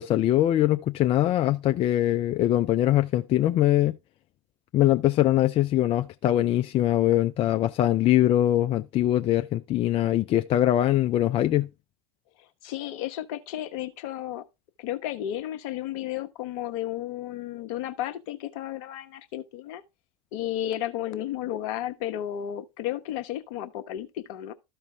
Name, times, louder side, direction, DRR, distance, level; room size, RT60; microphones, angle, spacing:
voice 1, 0.0-3.9 4.7-11.7, left 13 dB, 30° left, 0.4 m, -22 dB
voice 2, 12.4-14.4 14.8-19.8 20.3-24.5, left 12 dB, 55° left, 1.0 m, -33 dB
13.0 x 4.5 x 3.4 m
hypercardioid pair, 95°, 19 cm